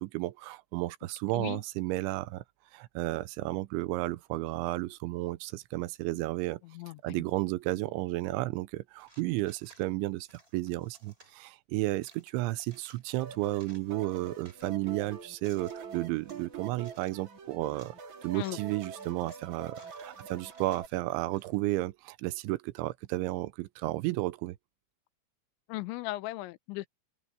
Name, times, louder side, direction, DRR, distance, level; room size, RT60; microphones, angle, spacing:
voice 1, 0.0-2.4 2.7-6.6 7.0-10.3 10.5-17.9 18.2-24.6, right 18 dB, 85° right, 3.0 m, -33 dB
voice 2, 6.6-7.2 18.3-18.6 25.7-26.9, left 18 dB, 80° left, 3.0 m, -37 dB
sound 1, 9.0-9.9 10.3-11.3 11.9-13.1 13.4-14.7 15.2-16.4 16.8-17.3 17.6-17.9 18.3-18.7 19.0-21.6, right 2 dB, 15° right, 3.6 m, -59 dB
sound 2, 13.2-20.9, right 5 dB, 40° right, 4.4 m, -45 dB
open air
omnidirectional pair, 5.4 m